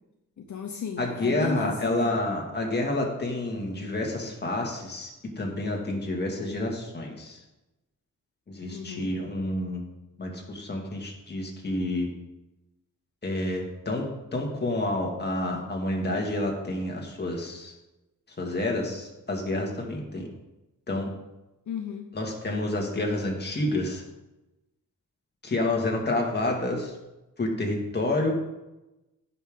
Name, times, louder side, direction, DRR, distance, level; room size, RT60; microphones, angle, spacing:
voice 1, 0.4-2.2 8.7-9.1 21.7-22.1, left 7 dB, 65° left, 3 dB, 0.8 m, -35 dB
voice 2, 1.0-5.1 5.4-7.4 8.5-9.8 10.2-12.1 13.2-14.0 14.3-17.7 18.4-20.3 20.9-21.1 22.1-24.0 25.4-26.9 27.4-28.3, left 2 dB, 30° left, 0 dB, 1.9 m, -29 dB
15.5 x 5.7 x 3.6 m, 0.99 s
wide cardioid pair, 160°, 32 cm